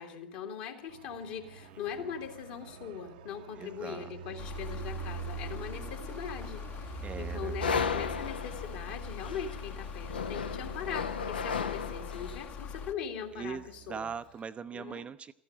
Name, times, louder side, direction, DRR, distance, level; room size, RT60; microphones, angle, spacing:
voice 1, 0.0-13.6 13.9-14.1 14.7-15.0, left 7 dB, 55° left, 5 dB, 2.4 m, -41 dB
Fixed-wing aircraft airplane, 0.9-14.4, right 8 dB, 60° right, 0.8 m, -46 dB
voice 2, 1.6-2.1 3.6-4.1 7.0-7.6 13.3-15.3, right 6 dB, 20° right, 11 dB, 0.5 m, -41 dB
sound 1, 4.4-12.9, left 6 dB, 30° left, 1.0 m, -42 dB
sound 2, 7.6-12.5, left 6 dB, 70° left, 0.8 m, -35 dB
14.0 x 11.5 x 8.8 m, 0.77 s
figure-of-eight pair, 85°, 5 cm